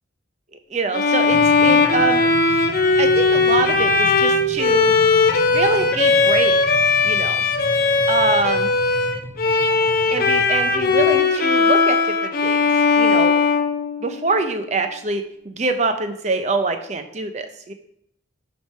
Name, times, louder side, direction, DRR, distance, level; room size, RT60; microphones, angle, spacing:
voice 1, 0.7-2.2 3.0-4.9 5.5-6.6 7.0-7.4 8.1-8.7 10.1-12.0 12.2-12.7 12.9-13.3 14.0-17.7, right 3 dB, 35° right, 7 dB, 0.5 m, -24 dB
Bowed string instrument, 0.9-14.4, left 4 dB, 45° left, 0.5 m, -18 dB
sound 1, 1.3-11.2, equal, 65° right, 1.9 m, -37 dB
6.0 x 3.5 x 5.5 m, 0.74 s
head